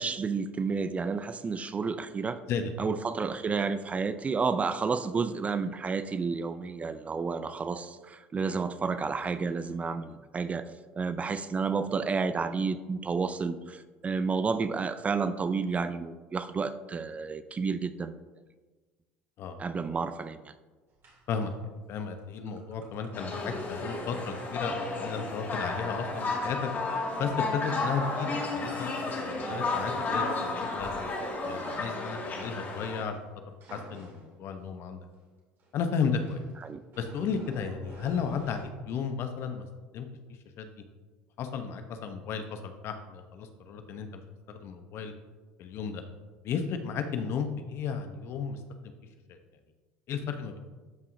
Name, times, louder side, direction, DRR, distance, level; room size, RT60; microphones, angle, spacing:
voice 1, 0.0-2.4 2.8-18.1 19.6-20.5 36.6-36.8, right 5 dB, 25° right, 12 dB, 0.4 m, -31 dB
sound 1, 21.0-21.4 22.0-22.2 22.5-32.6 33.6-34.4 35.1-35.2 35.6-35.7 36.1-38.7, right 2 dB, 50° right, 2.7 m, -47 dB
voice 2, 21.9-26.7 27.2-30.9 31.4-33.2 33.7-35.0 35.7-36.4 37.0-39.6 39.9-40.1 40.6-40.7 41.4-44.2 44.5-45.1 45.6-46.0 46.4-48.9 49.3-49.4 50.1-50.6, left 6 dB, 55° left, 7 dB, 0.9 m, -34 dB
sound 2, 23.1-33.0, left 3 dB, 40° left, 2.1 m, -33 dB
12.5 x 5.6 x 2.7 m, 1.3 s
hypercardioid pair, 75°, 5 cm